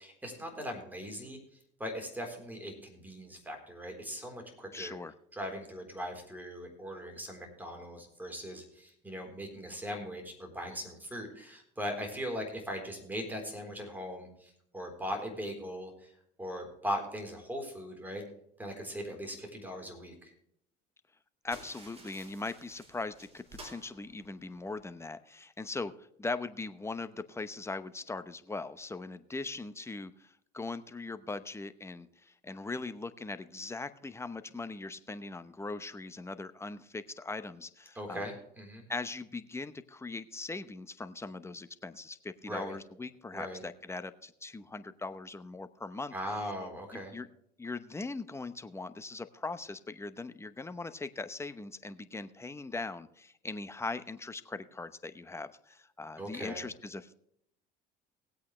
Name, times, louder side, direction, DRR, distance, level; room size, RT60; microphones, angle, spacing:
voice 1, 0.0-1.4 1.8-5.0 5.3-16.1 16.4-18.3 18.6-20.3 38.0-38.9 42.5-42.8 43.3-43.6 46.1-47.1 56.2-56.7, equal, 10° right, 3 dB, 3.9 m, -39 dB
voice 2, 4.7-5.1 21.4-38.3 38.9-46.1 47.1-47.3 47.6-57.1, left 3 dB, 10° left, 11 dB, 0.9 m, -40 dB
sound 1, 21.5-24.8, right 2 dB, 30° right, 3.9 m, -53 dB
19.0 x 8.4 x 3.3 m, 0.73 s
supercardioid pair, 100°, 21 cm